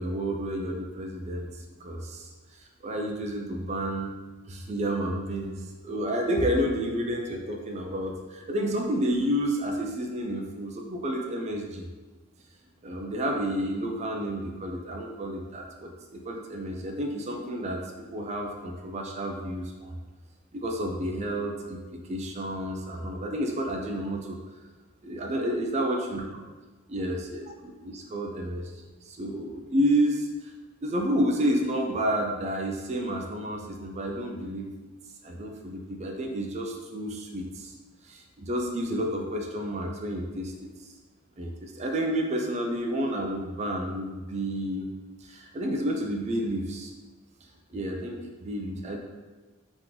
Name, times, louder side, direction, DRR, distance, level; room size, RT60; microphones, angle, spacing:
voice 1, 0.0-1.5 1.8-4.1 4.5-11.8 12.8-17.8 18.1-19.9 20.5-24.4 25.0-26.3 26.9-28.7 29.1-30.5 30.8-34.7 35.2-37.7 38.0-40.9 41.4-44.9 45.2-46.9 47.7-49.0, equal, 35° right, 2 dB, 0.4 m, -30 dB
3.7 x 2.9 x 3.7 m, 1.3 s
head